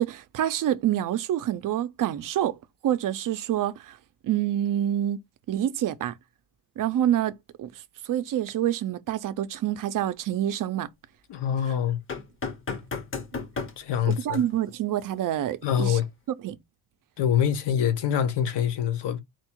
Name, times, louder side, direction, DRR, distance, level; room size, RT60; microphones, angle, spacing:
voice 1, 0.0-2.6 2.8-4.0 4.2-5.2 5.5-6.1 6.8-7.7 8.1-10.9 14.0-16.0 16.4-16.6, right 11 dB, 45° right, 0.5 m, -27 dB
voice 2, 11.3-12.0 13.8-14.4 15.6-16.1 17.2-19.2, left 9 dB, 65° left, 0.9 m, -25 dB
sound 1, 12.1-13.8 14.1-14.4 16.0-16.1, left 4 dB, 30° left, 0.8 m, -33 dB
4.3 x 2.4 x 4.4 m
cardioid pair, 145°, 45 cm